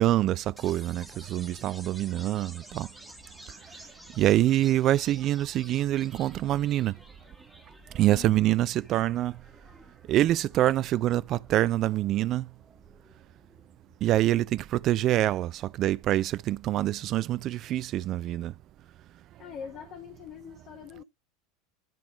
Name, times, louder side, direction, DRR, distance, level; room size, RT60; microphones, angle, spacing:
voice 1, 0.0-2.9 4.2-7.0 7.9-9.3 10.1-12.5 14.0-18.5, right 14 dB, 40° right, 0.4 m, -25 dB
sound 1, 0.6-14.5, equal, 5° right, 1.6 m, -52 dB
voice 2, 8.1-8.7 19.4-21.0, left 8 dB, 40° left, 1.5 m, -43 dB
11.0 x 3.7 x 5.6 m
figure-of-eight pair, 75°, 0 cm